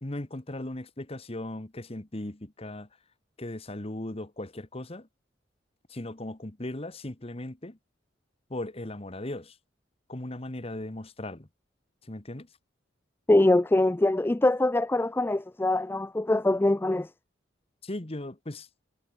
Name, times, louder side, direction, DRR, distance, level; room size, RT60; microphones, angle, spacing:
voice 1, 0.0-2.9 3.4-5.1 5.9-7.8 8.5-9.6 10.1-11.5 12.1-12.5 17.8-18.7, left 1 dB, 30° left, 1.4 m, -37 dB
voice 2, 13.3-17.1, left 2 dB, 10° left, 0.3 m, -23 dB
head